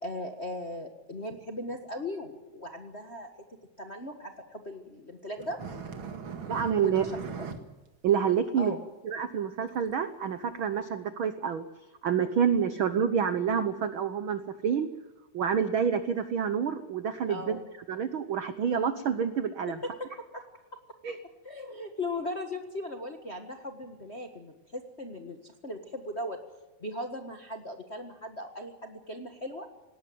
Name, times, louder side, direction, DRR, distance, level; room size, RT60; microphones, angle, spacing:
voice 1, 0.0-3.3 3.8-5.6 6.8-7.2 8.6-8.8 17.3-17.7 19.8-20.8 21.4-26.4 26.8-29.7, left 1 dB, 35° left, 4 dB, 1.1 m, -38 dB
sound 1, 5.4-7.6 7.9-8.1 8.3-8.4 9.1-9.2 9.9-10.0 10.8-10.9, right 5 dB, 45° right, 2.3 m, -39 dB
voice 2, 6.5-7.1 8.0-8.8 9.0-11.6 12.0-14.9 15.3-17.6 17.9-19.8 21.0-21.2, right 7 dB, 75° right, 11 dB, 1.2 m, -28 dB
18.5 x 18.5 x 9.4 m, 1.1 s
omnidirectional pair, 3.6 m